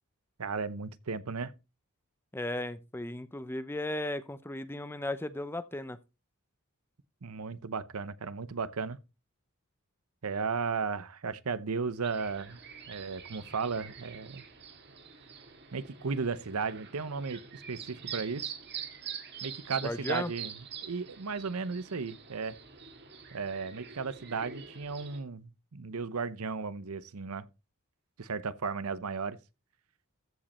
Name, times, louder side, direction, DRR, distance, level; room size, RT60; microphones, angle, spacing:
voice 1, 0.4-1.5 7.2-9.0 10.2-12.6 12.9-14.4 15.7-18.5 19.4-20.5 20.8-22.6 23.3-27.5 28.2-29.4, right 5 dB, 75° right, 0.8 m, -35 dB
voice 2, 2.3-6.0 19.8-20.3, left 1 dB, 10° left, 0.6 m, -35 dB
sound 1, 12.0-25.2, right 7 dB, 50° right, 1.9 m, -45 dB
14.5 x 5.2 x 4.2 m
head